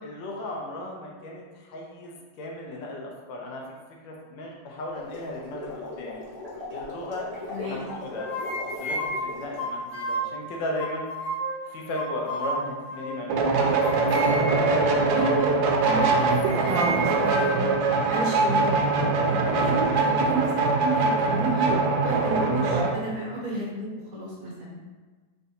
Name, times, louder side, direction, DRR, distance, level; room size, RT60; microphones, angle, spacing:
voice 1, 0.0-3.8 4.0-6.2 6.7-7.3 7.7-11.1 11.7-13.8 14.3-14.9 15.9-16.2 19.5-19.8, left 1 dB, 80° left, -1 dB, 1.4 m, -36 dB
sound 1, 4.8-9.7, left 2 dB, 20° right, 0.8 m, -38 dB
voice 2, 7.5-7.8 15.1-15.5 15.8-17.7 18.0-18.9 19.3-21.7 22.0-23.9 24.1-24.8, right 2 dB, 55° right, -6 dB, 1.4 m, -32 dB
sound 2, 7.9-10.4 10.8-11.6 11.9-13.3 13.8-14.7 15.2-15.4 15.8-17.7, right 1 dB, 65° left, 0.8 m, -32 dB
sound 3, 13.3-22.9, right 3 dB, 75° right, 1.2 m, -22 dB
3.9 x 3.3 x 2.7 m, 1.4 s
omnidirectional pair, 2.1 m